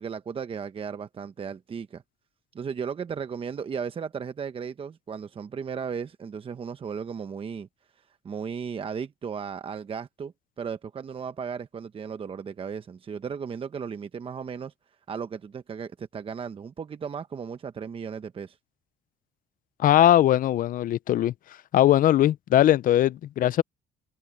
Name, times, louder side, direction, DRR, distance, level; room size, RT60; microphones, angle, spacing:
voice 1, 0.0-2.0 2.5-7.7 8.2-14.7 15.1-18.6, right 6 dB, 35° right, 1.0 m, -35 dB
voice 2, 19.8-21.3 21.7-23.6, left 12 dB, 55° left, 0.6 m, -20 dB
cardioid pair, 110°, 17 cm